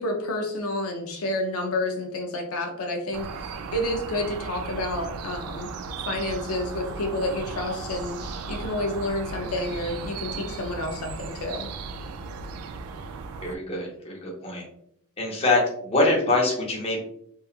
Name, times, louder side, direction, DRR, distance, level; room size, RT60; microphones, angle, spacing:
voice 1, 0.0-5.7 6.0-11.7, left 1 dB, 85° left, 3 dB, 0.5 m, -30 dB
sound 1, 3.1-13.6, right 4 dB, 85° right, 0.3 m, -36 dB
voice 2, 13.4-14.7 15.2-17.0, left 2 dB, 30° left, -1 dB, 0.6 m, -24 dB
2.9 x 2.3 x 2.3 m, 0.70 s
head